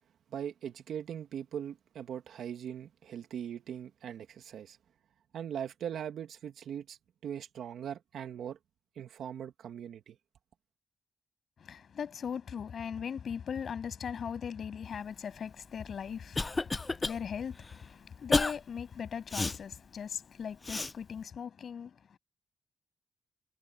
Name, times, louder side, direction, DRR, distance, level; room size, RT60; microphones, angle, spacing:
voice 1, 0.3-4.8 5.3-8.6 9.0-10.2, right 9 dB, 75° right, 2.0 m, -40 dB
voice 2, 11.6-22.2, left 7 dB, 60° left, 7.3 m, -39 dB
Cough, 15.8-17.2 17.6-17.8 18.3-18.6 19.3-19.6 20.6-20.9, left 3 dB, 25° left, 0.5 m, -30 dB
cardioid pair, 75°, 0 cm